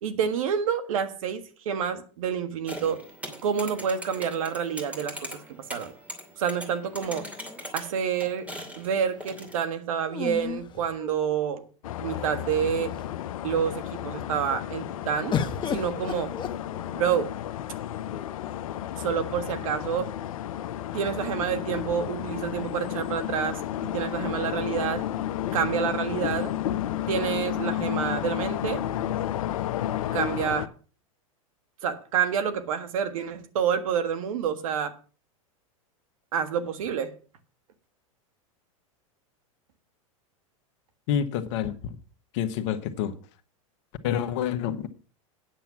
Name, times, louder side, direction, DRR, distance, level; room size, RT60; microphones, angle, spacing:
voice 1, 0.0-3.0 3.4-5.4 5.7-5.9 6.4-7.3 7.7-8.5 8.8-11.6 12.0-13.0 13.4-15.4 15.7-16.3 16.9-17.3 19.0-20.1 20.9-25.0 25.5-26.5 27.1-28.8 30.1-30.7 31.8-34.9 36.3-37.1, right 7 dB, 75° right, 1.6 m, -28 dB
sound 1, 2.7-9.7, equal, 10° right, 2.6 m, -41 dB
sound 2, 7.0-8.1 10.1-11.6 12.4-12.5 12.8-13.3 15.3-17.2 18.1-18.8, left 6 dB, 25° left, 1.2 m, -35 dB
sound 3, 11.8-30.7, left 12 dB, 75° left, 0.7 m, -32 dB
voice 2, 41.1-41.9 42.3-43.2 44.0-44.9, left 9 dB, 60° left, 1.3 m, -28 dB
9.2 x 7.3 x 6.0 m
hypercardioid pair, 105°, 18 cm